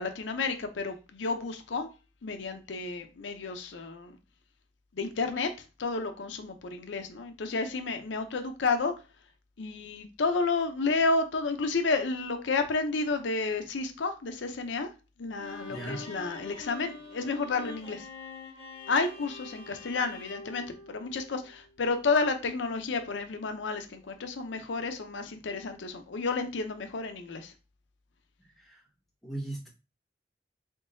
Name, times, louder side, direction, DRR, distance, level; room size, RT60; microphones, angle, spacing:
voice 1, 0.0-1.9 2.2-4.2 4.9-5.5 5.8-8.9 9.6-14.9 15.2-18.1 18.9-27.5, left 4 dB, 90° left, 0.6 m, -31 dB
Bowed string instrument, 15.4-21.6, left 3 dB, 35° left, 1.1 m, -45 dB
voice 2, 15.7-16.1 28.6-28.8 29.2-29.7, right 1 dB, ahead, 1.5 m, -38 dB
3.7 x 3.6 x 2.6 m
head